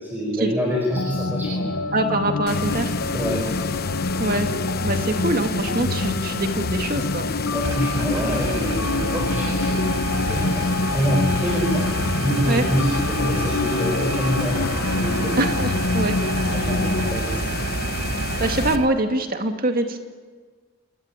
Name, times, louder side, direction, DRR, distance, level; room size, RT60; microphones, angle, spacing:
voice 1, 0.0-1.7 3.1-3.7 5.1-5.2 7.5-10.7 10.9-11.9 12.2-14.7 15.0-15.4 16.5-17.5, equal, 10° right, -1 dB, 4.9 m, -26 dB
sound 1, 0.9-17.2, left 3 dB, 70° left, 0.8 m, -26 dB
voice 2, 1.9-2.9 4.2-4.5 4.8-7.3 12.4-12.6 15.4-16.5 18.1-20.0, right 2 dB, 40° right, 5 dB, 2.4 m, -24 dB
sound 2, 2.5-18.8, left 4 dB, 45° left, 1.0 m, -30 dB
sound 3, 7.6-18.9, right 4 dB, 80° right, 0.9 m, -29 dB
28.0 x 20.5 x 10.0 m, 1.5 s
head